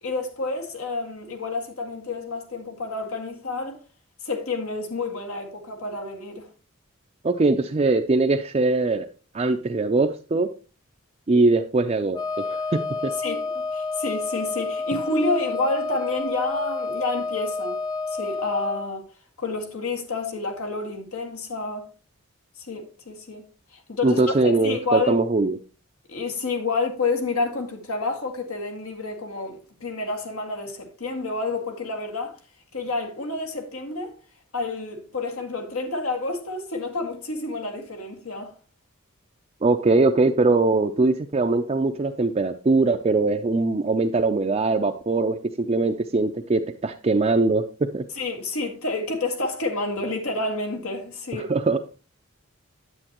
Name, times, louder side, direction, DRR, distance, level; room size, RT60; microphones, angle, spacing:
voice 1, 0.0-3.8 4.2-6.5 13.2-17.8 18.1-19.1 19.4-21.9 22.6-25.2 26.1-32.4 32.7-34.1 34.5-38.5 48.2-51.5, left 3 dB, 85° left, 1.8 m, -29 dB
voice 2, 7.2-9.1 9.3-10.5 11.3-13.1 24.0-25.6 39.6-48.0 51.3-51.8, right 3 dB, 30° right, 0.4 m, -22 dB
Wind instrument woodwind instrument, 12.1-18.9, left 3 dB, 20° left, 0.5 m, -29 dB
9.9 x 7.8 x 3.0 m
head